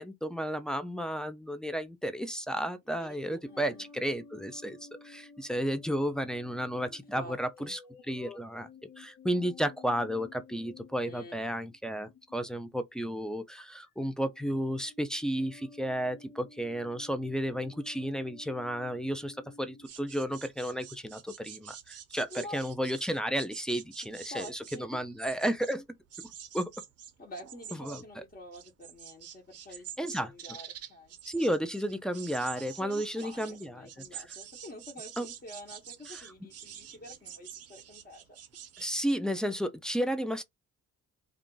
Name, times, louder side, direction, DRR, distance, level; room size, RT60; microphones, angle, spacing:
voice 1, 0.0-7.8 8.1-8.7 9.0-25.8 26.5-26.7 27.8-28.2 30.0-30.3 31.3-34.2 35.2-35.3 36.1-36.2 38.8-40.4, equal, ahead, 0.4 m, -33 dB
voice 2, 2.9-3.9 6.9-7.7 11.1-11.4 22.3-22.6 24.0-25.0 27.2-31.2 32.8-38.3, left 1 dB, 30° left, 1.0 m, -48 dB
sound 1, 3.4-12.8 13.6-13.9 14.2-19.9, left 4 dB, 70° left, 0.8 m, -53 dB
sound 2, 19.8-25.8 26.1-39.1, right 9 dB, 55° right, 0.6 m, -47 dB
2.4 x 2.3 x 3.8 m
cardioid pair, 90°, 30 cm